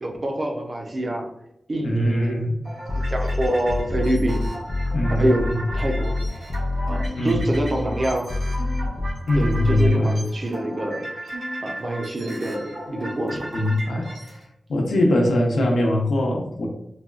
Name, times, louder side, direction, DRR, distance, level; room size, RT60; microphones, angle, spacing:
voice 1, 0.0-1.3 1.7-2.4 3.0-4.5 5.2-6.2 6.9-8.3 9.3-11.0 11.6-13.5, right 1 dB, 30° right, 1 dB, 0.4 m, -26 dB
voice 2, 1.8-2.6 4.9-5.6 7.2-7.4 9.3-10.2 12.9-13.0 13.5-14.1 14.7-16.7, left 1 dB, 70° left, 0 dB, 0.6 m, -22 dB
sound 1, 2.7-14.4, right 1 dB, 80° right, 1.4 m, -37 dB
sound 2, 2.9-9.9, left 2 dB, 35° left, 0.4 m, -26 dB
sound 3, 6.9-7.1 7.7-8.0 8.6-8.8 9.6-9.9 10.5-10.7 11.3-11.6 12.2-12.5 13.0-13.3, equal, 60° right, 0.8 m, -36 dB
4.1 x 2.3 x 2.3 m, 0.80 s
wide cardioid pair, 170°, 0 cm